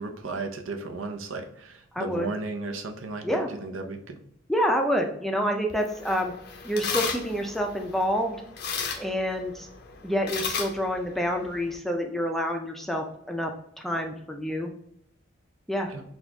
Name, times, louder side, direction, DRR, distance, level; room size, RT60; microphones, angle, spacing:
voice 1, 0.0-4.2 15.9-16.0, right 3 dB, 90° right, 5 dB, 0.6 m, -35 dB
voice 2, 1.9-2.3 3.2-3.5 4.5-6.3 6.6-8.4 9.0-9.7 10.0-13.5 13.8-14.7 15.7-15.9, equal, ahead, 3 dB, 0.4 m, -27 dB
sound 1, 5.7-11.8, left 6 dB, 55° left, 0.5 m, -35 dB
4.1 x 2.4 x 2.8 m, 0.73 s
head